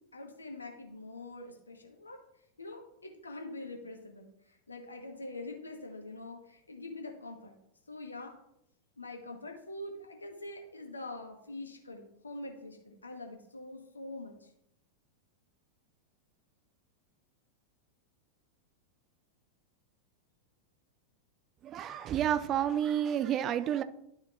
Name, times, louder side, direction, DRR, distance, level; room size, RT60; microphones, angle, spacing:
voice 1, 0.1-2.2 2.6-4.3 4.7-7.5 7.9-8.3 9.0-14.3, left 2 dB, 75° left, 3 dB, 1.3 m, -44 dB
voice 2, 21.6-23.8, right 10 dB, 30° right, 12 dB, 0.5 m, -30 dB
11.5 x 5.1 x 2.5 m, 0.76 s
figure-of-eight pair, 90°, 0 cm